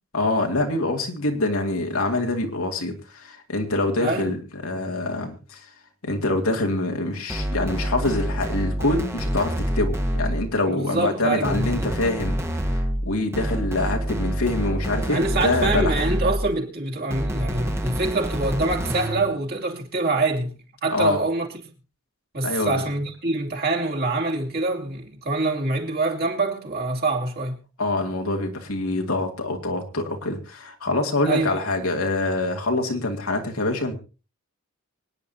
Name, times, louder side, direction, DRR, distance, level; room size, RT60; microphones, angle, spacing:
voice 1, 0.1-5.6 6.0-12.4 13.0-16.1 20.9-21.2 22.4-22.8 27.8-34.0, left 2 dB, 80° left, 2.5 m, -25 dB
voice 2, 4.0-4.3 10.7-11.9 15.1-20.5 20.8-21.5 22.3-27.6 31.2-31.5, right 2 dB, 50° right, 2.7 m, -25 dB
sound 1, 7.3-10.6 11.4-16.6 17.1-19.3, equal, 10° right, 1.4 m, -27 dB
25.0 x 9.8 x 2.8 m
head